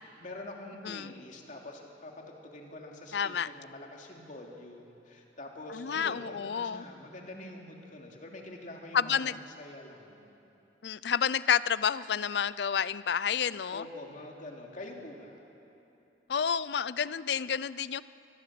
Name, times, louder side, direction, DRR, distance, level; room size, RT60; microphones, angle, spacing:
voice 1, 0.2-10.2 13.7-15.4, left 1 dB, 45° left, 0 dB, 2.9 m, -45 dB
voice 2, 3.1-3.5 5.7-6.8 8.9-9.5 10.8-13.8 16.3-18.0, left 7 dB, 70° left, 18 dB, 0.5 m, -30 dB
25.0 x 20.0 x 7.6 m, 2.9 s
head